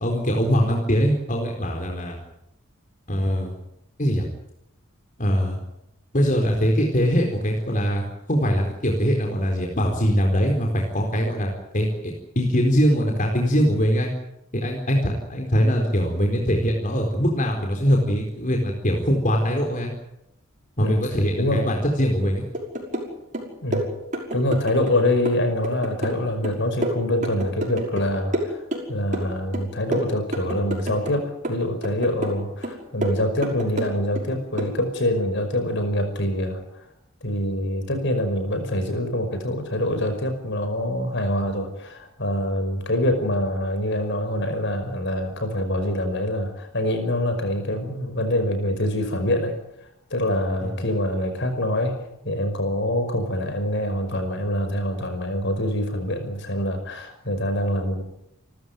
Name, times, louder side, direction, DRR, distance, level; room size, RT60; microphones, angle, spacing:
voice 1, 0.0-2.2 3.1-3.5 4.0-4.3 5.2-5.6 6.1-14.1 14.5-19.9 20.8-22.4 50.6-50.8, equal, 40° left, 1 dB, 4.1 m, -22 dB
voice 2, 21.4-21.7 23.6-23.9 24.3-28.6 28.9-36.6 37.2-49.5 50.1-58.0, left 1 dB, 55° left, 7 dB, 5.5 m, -25 dB
sound 1, 22.5-23.1 23.3-25.0 25.3-28.1 28.3-29.3 29.5-31.2 31.4-32.4 32.6-34.3 34.6-34.8, right 1 dB, 35° right, 5.8 m, -29 dB
29.5 x 14.0 x 9.3 m, 0.81 s
head